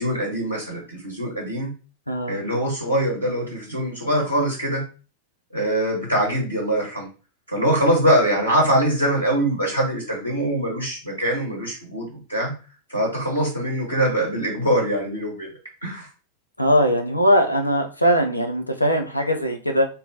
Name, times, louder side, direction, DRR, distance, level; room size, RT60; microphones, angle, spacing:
voice 1, 0.0-1.7 2.3-4.8 5.5-7.1 7.5-12.5 12.9-15.5 15.8-16.1, right 1 dB, 85° right, -2 dB, 0.9 m, -23 dB
voice 2, 2.1-2.4 16.6-19.9, equal, 85° left, 4 dB, 0.5 m, -20 dB
3.7 x 2.1 x 2.6 m, 0.35 s
figure-of-eight pair, 90°, 0 cm